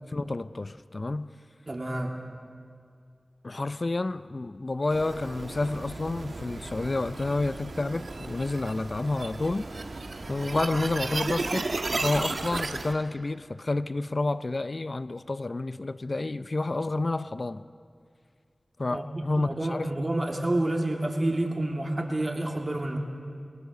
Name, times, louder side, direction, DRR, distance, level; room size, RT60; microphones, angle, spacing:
voice 1, 0.1-1.3 3.4-9.7 10.3-11.6 12.0-17.6 18.8-20.0, left 2 dB, 50° left, 0.5 m, -29 dB
voice 2, 1.7-2.1 18.9-23.0, right 1 dB, 40° right, 3.0 m, -29 dB
sound 1, 4.9-12.9, right 3 dB, 75° right, 1.4 m, -34 dB
27.5 x 20.0 x 6.7 m
wide cardioid pair, 55°, 0 cm